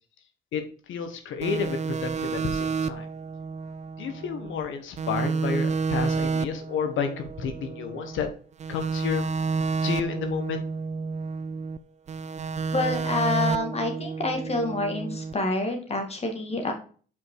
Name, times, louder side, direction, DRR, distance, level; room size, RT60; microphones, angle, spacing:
voice 1, 0.9-3.0 4.0-8.3 8.7-9.3 9.8-10.6, left 6 dB, 80° left, 6 dB, 1.3 m, -31 dB
sound 1, 1.4-4.7 5.0-8.2 8.6-11.8 12.1-15.3, right 5 dB, 35° right, 0.4 m, -30 dB
voice 2, 12.7-16.7, left 2 dB, 30° left, 4 dB, 2.1 m, -27 dB
5.5 x 5.0 x 4.7 m, 0.41 s
cardioid pair, 90°, 20 cm